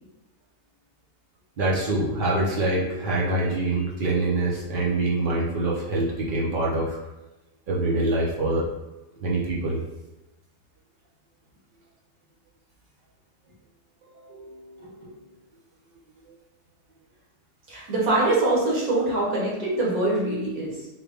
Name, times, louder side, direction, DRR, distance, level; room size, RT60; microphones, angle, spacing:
voice 1, 1.6-7.0 7.7-8.7 9.2-9.8, right 2 dB, 45° right, -4 dB, 0.7 m, -25 dB
voice 2, 14.0-15.1 17.7-20.9, right 2 dB, 65° right, -4 dB, 1.5 m, -25 dB
3.9 x 2.2 x 3.4 m, 1.0 s
omnidirectional pair, 1.7 m